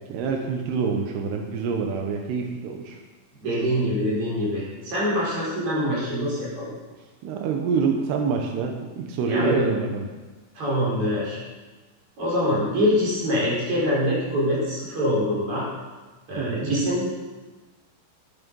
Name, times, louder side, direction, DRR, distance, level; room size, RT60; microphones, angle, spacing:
voice 1, 0.1-3.0 7.2-10.0 16.4-16.7, right 5 dB, 85° right, 2 dB, 3.2 m, -26 dB
voice 2, 3.4-6.7 9.2-9.7 10.6-11.4 12.2-15.7 16.3-17.1, equal, 35° right, -6 dB, 5.4 m, -24 dB
13.0 x 10.0 x 5.4 m, 1.2 s
omnidirectional pair, 4.6 m